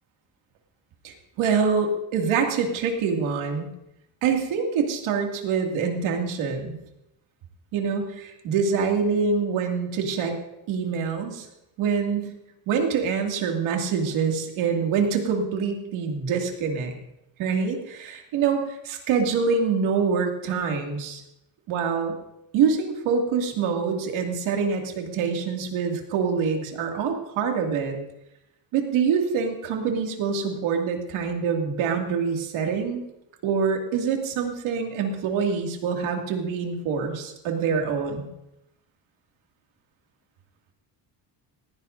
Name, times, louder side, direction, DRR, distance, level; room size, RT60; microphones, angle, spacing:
voice 1, 1.0-3.7 4.2-6.7 7.7-10.3 10.7-11.5 11.8-12.3 12.7-17.0 17.4-21.2 21.7-22.1 22.5-28.0 28.7-33.0 33.4-38.3, right 6 dB, 85° right, 2 dB, 2.5 m, -25 dB
19.5 x 15.0 x 2.7 m, 0.86 s
cardioid pair, 100°, 46 cm